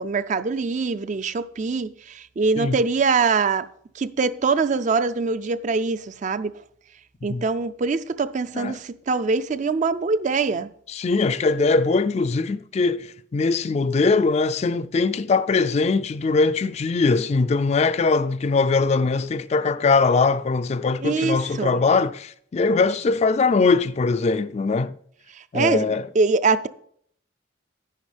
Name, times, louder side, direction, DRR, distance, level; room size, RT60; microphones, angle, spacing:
voice 1, 0.0-3.7 4.0-6.5 7.2-10.7 21.0-21.8 25.3-26.7, right 4 dB, 40° right, 0.4 m, -23 dB
voice 2, 10.9-24.9 25.5-26.0, left 4 dB, 35° left, 0.3 m, -21 dB
10.5 x 9.8 x 3.4 m
head